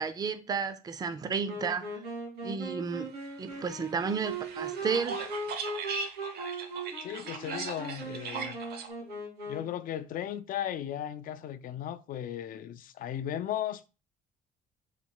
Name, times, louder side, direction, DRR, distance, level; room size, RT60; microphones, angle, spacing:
voice 1, 0.0-1.8 2.4-3.1 3.4-5.2, right 5 dB, 25° right, 0.4 m, -32 dB
Wind instrument woodwind instrument, 1.5-9.9, right 2 dB, 90° right, 2.3 m, -39 dB
sound 1, 3.5-8.9, right 5 dB, 70° right, 0.8 m, -39 dB
voice 2, 7.0-8.6 9.5-13.9, left 10 dB, 55° left, 0.4 m, -36 dB
4.0 x 2.2 x 4.6 m
cardioid pair, 110°, 17 cm